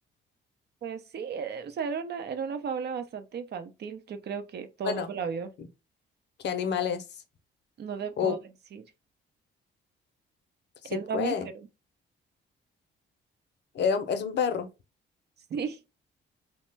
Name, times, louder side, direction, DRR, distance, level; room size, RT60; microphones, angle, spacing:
voice 1, 0.8-5.5 7.8-8.4 8.7-8.8 10.8-11.7 15.5-15.8, right 6 dB, 55° right, 0.7 m, -34 dB
voice 2, 6.4-7.0 8.2-8.4 10.8-11.4 13.7-14.7, left 6 dB, 60° left, 0.6 m, -28 dB
3.0 x 2.2 x 3.2 m
cardioid pair, 90°, 20 cm